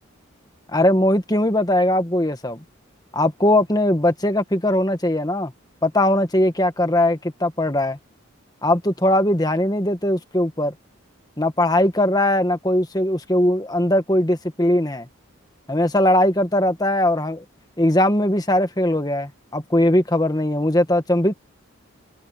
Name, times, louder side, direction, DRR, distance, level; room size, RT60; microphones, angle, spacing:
voice 1, 0.7-2.6 3.1-5.5 5.8-8.0 8.6-10.7 11.4-15.1 15.7-17.4 17.8-21.3, left 1 dB, 20° left, 1.6 m, -20 dB
open air
head